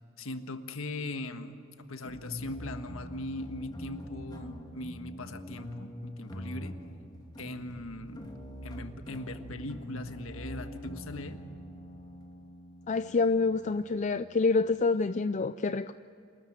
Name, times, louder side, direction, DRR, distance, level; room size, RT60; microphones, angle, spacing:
voice 1, 0.2-1.6 1.9-6.7 7.4-8.3 8.6-11.4, left 2 dB, 80° left, 8 dB, 1.5 m, -40 dB
sound 1, 2.0-14.9, equal, 20° left, 2.8 m, -44 dB
voice 2, 12.9-15.9, left 3 dB, 35° left, 12 dB, 0.4 m, -27 dB
28.0 x 13.5 x 9.4 m, 2.6 s
head